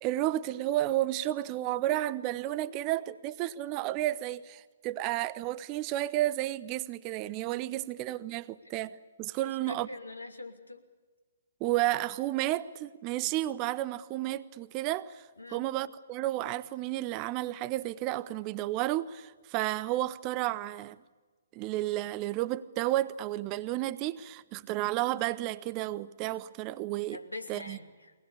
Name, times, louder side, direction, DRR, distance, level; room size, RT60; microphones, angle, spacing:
voice 1, 0.0-8.9 9.2-9.9 11.6-15.2 15.5-21.0 21.5-27.2 27.5-27.8, right 15 dB, 25° right, 0.6 m, -32 dB
voice 2, 7.5-7.9 9.4-10.8 15.4-15.7 27.1-28.1, left 2 dB, 85° left, 2.8 m, -44 dB
23.0 x 19.5 x 8.4 m
figure-of-eight pair, 130°, 0 cm